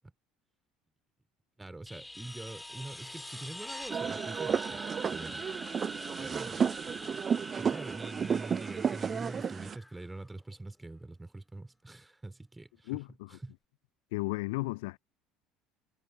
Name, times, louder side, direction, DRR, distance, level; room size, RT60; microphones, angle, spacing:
voice 1, 1.6-5.7 6.2-6.7 7.0-7.2 7.6-12.9 13.3-13.5, right 2 dB, 10° right, 2.6 m, -45 dB
sound 1, 1.9-10.5 12.9-13.0, left 1 dB, 10° left, 2.2 m, -45 dB
sound 2, 3.9-9.8, right 7 dB, 35° right, 0.5 m, -32 dB
voice 2, 12.9-13.4 14.1-15.0, left 24 dB, 65° left, 0.3 m, -34 dB
figure-of-eight pair, 65°, 0 cm